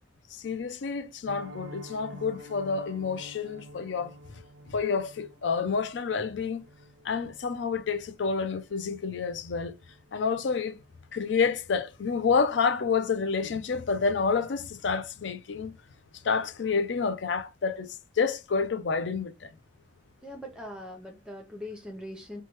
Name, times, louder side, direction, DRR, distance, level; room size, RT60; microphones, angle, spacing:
voice 1, 0.3-4.1 4.7-6.6 7.0-9.7 10.1-10.8 11.1-15.7 16.2-19.5, left 5 dB, 65° left, 0.4 m, -29 dB
Piano, 1.3-12.2 12.4-12.6 13.0-13.1 13.5-13.7 14.0-14.1, equal, 65° right, 0.4 m, -50 dB
voice 2, 20.2-22.4, left 1 dB, 5° right, 0.7 m, -41 dB
3.1 x 2.2 x 3.0 m
head